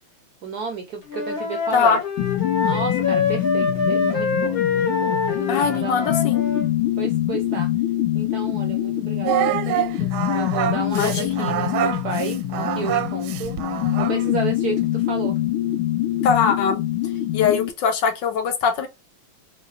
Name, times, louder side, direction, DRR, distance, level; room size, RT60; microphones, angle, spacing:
voice 1, 0.4-2.0 2.6-6.2 7.0-7.7 8.1-13.6 14.0-15.4, right 4 dB, 75° right, 0.9 m, -32 dB
Wind instrument woodwind instrument, 1.1-6.7, left 5 dB, 50° left, 1.4 m, -25 dB
sound 1, 2.2-17.7, left 13 dB, 90° left, 1.5 m, -25 dB
voice 2, 5.5-6.4 10.9-11.4 16.2-16.8 17.3-18.9, left 6 dB, 70° left, 1.3 m, -21 dB
Singing, 9.3-14.3, right 11 dB, 90° right, 1.4 m, -26 dB
3.9 x 3.2 x 2.3 m
omnidirectional pair, 2.2 m